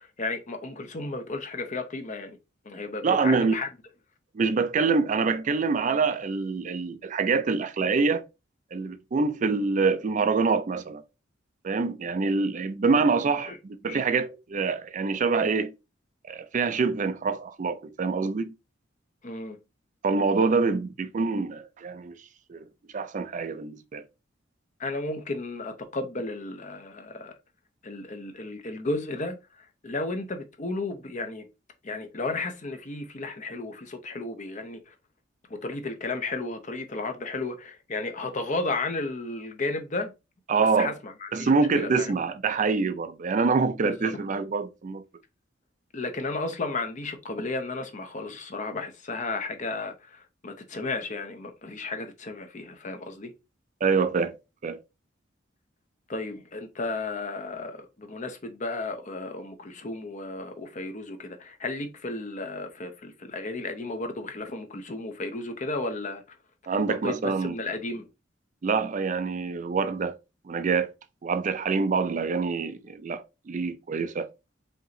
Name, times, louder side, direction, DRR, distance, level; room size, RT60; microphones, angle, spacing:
voice 1, 0.0-2.4 2.6-3.7 13.5-13.6 13.9-14.0 19.2-19.6 24.8-27.3 27.8-31.5 31.8-34.9 35.5-40.1 40.6-42.1 43.8-44.2 45.9-53.3 56.1-66.2 66.7-68.1, left 3 dB, 40° left, 0.7 m, -33 dB
voice 2, 3.0-3.5 4.3-8.2 8.7-11.0 11.6-15.7 16.2-18.5 20.0-22.2 22.5-22.7 22.9-24.0 40.5-40.9 41.3-45.0 53.8-54.4 54.6-54.8 66.7-67.5 68.6-70.2 70.5-70.9 71.2-74.3, right 4 dB, 40° right, 0.4 m, -25 dB
5.3 x 2.9 x 2.6 m
head